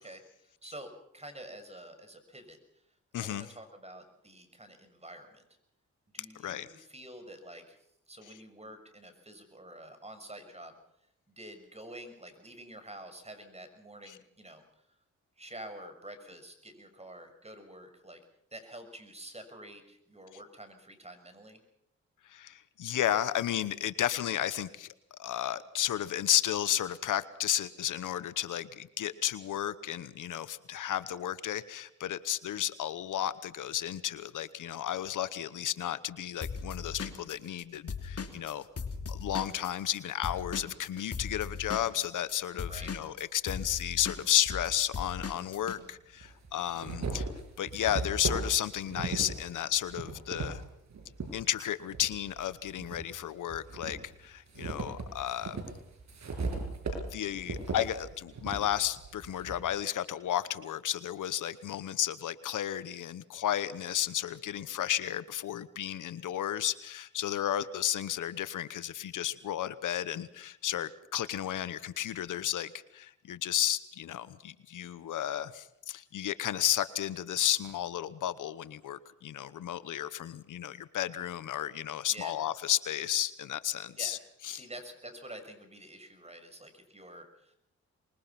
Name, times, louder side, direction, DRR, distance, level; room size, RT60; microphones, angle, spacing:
voice 1, 0.0-2.8 3.2-5.4 6.1-7.8 8.1-10.8 11.3-14.8 15.4-18.2 18.5-21.6 42.7-42.9 82.1-82.3 84.0-84.2 84.5-87.5, right 1 dB, 20° right, 8 dB, 6.4 m, -48 dB
voice 2, 3.1-3.5 6.3-6.8 14.1-14.2 22.2-38.7 39.1-47.3 47.6-50.6 51.3-55.6 57.0-84.2 84.4-84.6, left 11 dB, 85° left, 15 dB, 1.0 m, -33 dB
Drum kit / Drum, 36.4-40.0 40.2-45.8, left 5 dB, 50° left, 3.1 m, -38 dB
sound 1, 44.5-44.6 45.6-45.7 46.2-51.3 51.9-53.1 53.5-59.6, right 4 dB, 65° right, 7.2 m, -38 dB
25.0 x 22.0 x 5.9 m, 0.76 s
cardioid pair, 65°, 30 cm